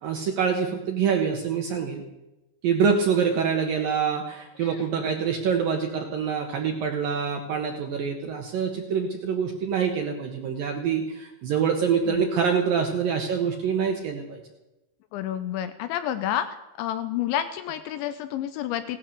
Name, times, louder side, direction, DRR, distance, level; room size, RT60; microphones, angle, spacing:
voice 1, 0.0-2.0 2.6-14.4, right 6 dB, 70° right, 2 dB, 2.3 m, -25 dB
voice 2, 15.1-16.5 16.8-19.0, left 11 dB, 80° left, 10 dB, 2.9 m, -29 dB
17.5 x 12.0 x 6.7 m, 0.99 s
omnidirectional pair, 5.6 m